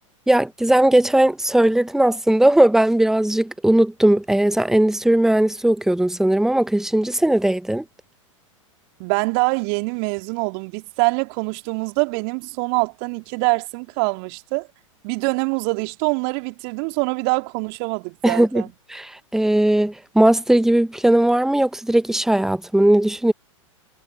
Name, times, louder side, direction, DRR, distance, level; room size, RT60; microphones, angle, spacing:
voice 1, 0.3-7.8 18.2-18.6 18.9-23.3, right 1 dB, 5° right, 1.0 m, -18 dB
voice 2, 9.0-14.7 15.0-18.7, right 36 dB, 45° right, 2.5 m, -24 dB
figure-of-eight pair, 95°, 17 cm